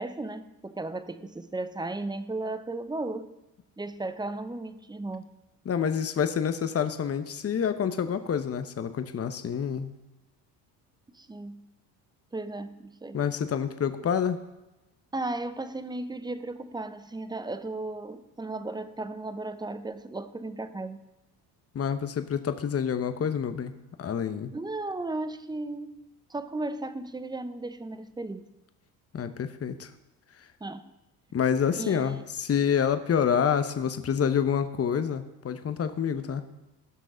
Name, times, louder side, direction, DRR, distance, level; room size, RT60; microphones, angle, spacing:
voice 1, 0.0-3.4 3.8-5.3 11.1-11.6 12.3-13.2 15.1-21.0 24.5-26.0 26.3-28.5 30.6-30.9 31.8-32.2, right 2 dB, 10° right, 11 dB, 0.7 m, -35 dB
voice 2, 5.7-9.9 13.1-14.4 21.7-23.7 24.0-24.5 29.1-29.9 31.3-36.4, left 7 dB, 30° left, 10 dB, 0.9 m, -27 dB
16.5 x 6.2 x 3.9 m, 0.99 s
hypercardioid pair, 65°, 49 cm